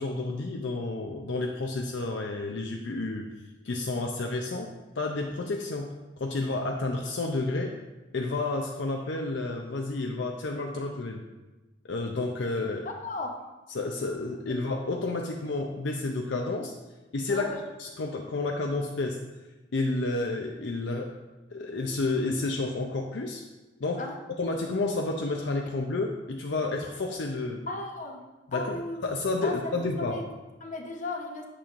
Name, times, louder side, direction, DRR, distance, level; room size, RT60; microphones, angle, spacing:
voice 1, 0.0-3.3 3.6-5.9 6.2-7.8 8.1-11.2 11.8-12.9 13.7-16.7 17.1-17.5 17.8-19.2 19.7-21.1 21.5-23.4 23.8-24.0 24.4-27.7 28.5-30.2, left 2 dB, 65° left, 2 dB, 0.5 m, -30 dB
voice 2, 12.8-13.3 17.3-17.6 24.0-24.2 27.7-28.2 28.5-29.0 29.4-30.2 30.6-31.4, left 2 dB, 40° left, 2 dB, 0.9 m, -35 dB
8.7 x 6.9 x 2.5 m, 1.1 s
head